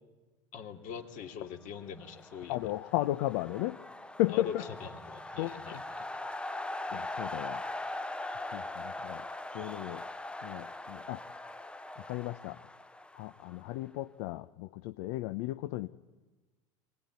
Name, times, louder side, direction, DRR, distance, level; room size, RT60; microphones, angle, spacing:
voice 1, 0.5-2.6 4.3-5.8, left 7 dB, 50° left, 5 dB, 2.8 m, -43 dB
sound 1, 1.9-13.8, left 2 dB, 5° left, 0.7 m, -41 dB
voice 2, 2.5-3.8 4.2-4.5 5.4-5.8 6.9-7.6 8.5-9.3 9.5-10.0 10.4-11.2 12.0-12.6 13.1-15.9, left 16 dB, 65° left, 12 dB, 0.8 m, -34 dB
23.5 x 18.5 x 9.5 m, 1.2 s
supercardioid pair, 110°, 18 cm